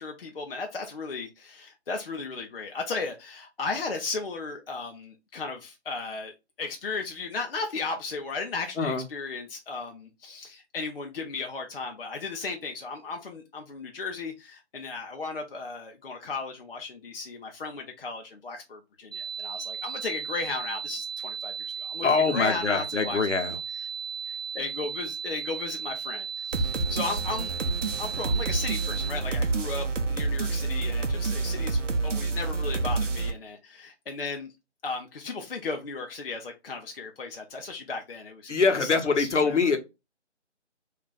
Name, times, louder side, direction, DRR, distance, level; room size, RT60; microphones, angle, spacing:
voice 1, 0.0-23.5 24.3-27.5 28.0-34.5 34.8-38.9 39.2-39.8, left 4 dB, 55° left, 0.5 m, -35 dB
sound 1, 19.1-29.1, right 6 dB, 40° right, 0.4 m, -36 dB
voice 2, 22.0-23.6 38.5-39.8, left 4 dB, 75° left, 0.8 m, -24 dB
sound 2, 26.5-33.3, right 3 dB, 90° right, 0.6 m, -28 dB
2.4 x 2.2 x 3.8 m
figure-of-eight pair, 155°, 36 cm